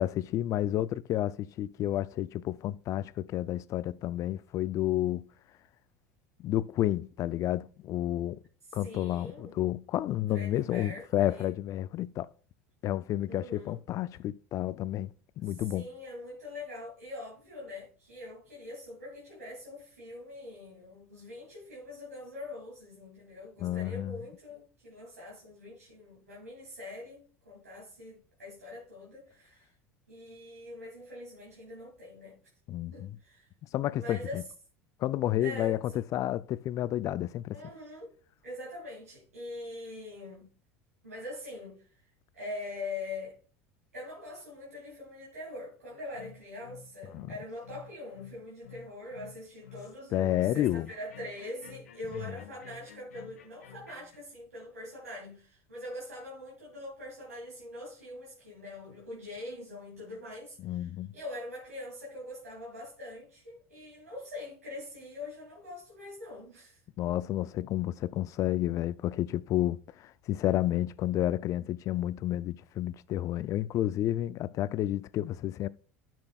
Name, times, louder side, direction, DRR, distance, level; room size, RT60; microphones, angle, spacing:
voice 1, 0.0-5.3 6.4-8.4 8.7-12.3 12.8-15.9 23.6-24.2 32.7-33.2 33.7-34.4 35.0-35.8 36.1-37.6 47.1-47.3 50.1-50.9 60.6-61.2 67.0-75.7, left 13 dB, 45° left, 0.4 m, -30 dB
voice 2, 8.6-9.6 10.3-11.5 13.3-13.8 15.4-29.7 30.1-32.4 32.9-33.5 33.9-34.4 35.4-36.0 37.5-38.1 38.4-40.5 41.0-43.4 43.9-66.8, left 2 dB, 85° right, 2.5 m, -43 dB
sound 1, 46.1-54.2, left 8 dB, 80° left, 1.3 m, -51 dB
13.0 x 6.1 x 2.3 m
hypercardioid pair, 75°, 8 cm